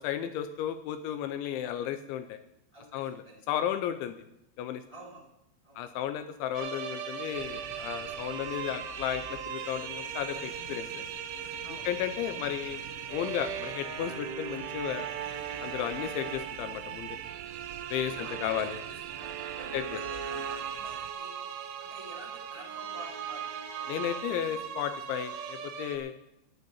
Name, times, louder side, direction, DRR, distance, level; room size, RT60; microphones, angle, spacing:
voice 1, 0.0-2.4 2.9-4.1 4.6-4.8 5.8-11.0 11.8-12.8 13.1-15.1 15.6-17.2 17.9-18.8 19.7-19.8 23.9-26.1, left 10 dB, 85° left, 9 dB, 2.8 m, -34 dB
voice 2, 2.7-3.4 4.9-5.3 5.6-5.9 11.6-11.9 18.0-21.4 21.8-23.5, right 2 dB, 40° left, -3 dB, 0.5 m, -49 dB
sound 1, 6.5-26.0, right 7 dB, 70° right, 2.8 m, -39 dB
sound 2, 7.3-21.1, right 13 dB, 85° right, 3.3 m, -44 dB
12.0 x 8.2 x 8.8 m, 0.84 s
omnidirectional pair, 5.9 m